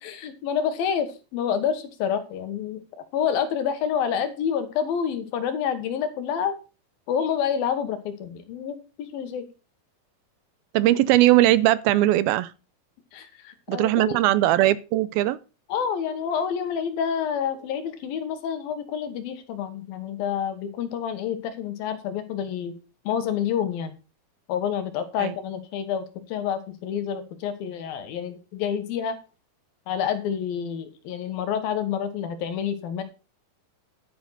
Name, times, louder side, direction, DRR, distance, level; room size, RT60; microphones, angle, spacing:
voice 1, 0.0-2.8 3.1-6.6 7.1-9.5 13.1-14.2 15.7-22.7 23.0-23.9 24.5-29.2 29.9-33.0, left 8 dB, 70° left, 3.1 m, -28 dB
voice 2, 10.7-12.5 13.7-15.4 25.2-25.3, right 15 dB, 80° right, 2.5 m, -19 dB
11.5 x 9.5 x 4.1 m
omnidirectional pair, 4.4 m